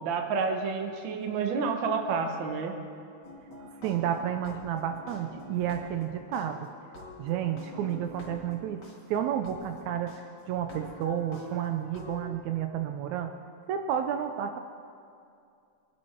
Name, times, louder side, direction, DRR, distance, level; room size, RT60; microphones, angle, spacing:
voice 1, 0.0-2.7, right 5 dB, 55° right, 4 dB, 1.4 m, -29 dB
sound 1, 3.2-6.0 6.3-8.9 9.4-9.5 10.1-10.2 10.6-12.2, left 1 dB, 35° left, 2.6 m, -45 dB
voice 2, 3.8-6.7 7.2-8.8 9.1-13.3 13.7-14.6, right 9 dB, 80° right, 6 dB, 1.9 m, -31 dB
22.5 x 11.0 x 4.5 m, 2.5 s
omnidirectional pair, 3.4 m